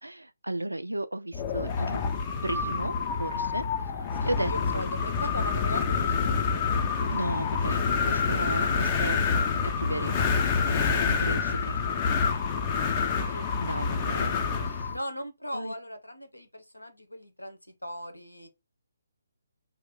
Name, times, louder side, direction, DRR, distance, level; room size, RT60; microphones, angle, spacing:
voice 1, 0.0-2.0 2.4-3.6 4.2-4.9 7.1-9.2 9.8-10.2 10.7-11.8 13.3-14.8 15.5-15.7, right 1 dB, 80° right, 0.3 m, -34 dB
Wind, 1.3-15.0, left 5 dB, 25° left, 0.4 m, -27 dB
voice 2, 4.2-6.7 14.9-18.5, equal, 85° left, 0.7 m, -39 dB
2.5 x 2.0 x 3.7 m
figure-of-eight pair, 140°, 0 cm